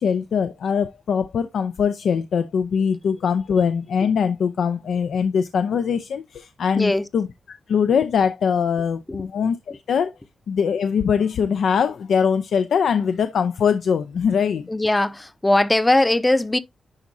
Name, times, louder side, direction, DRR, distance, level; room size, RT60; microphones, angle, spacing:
voice 1, 0.0-7.3 7.7-10.1 10.5-14.6, left 6 dB, 75° left, 0.5 m, -22 dB
voice 2, 6.8-7.1 9.1-9.2 14.7-16.6, left 1 dB, 15° left, 0.6 m, -20 dB
10.5 x 4.1 x 2.7 m
wide cardioid pair, 125°, 0 cm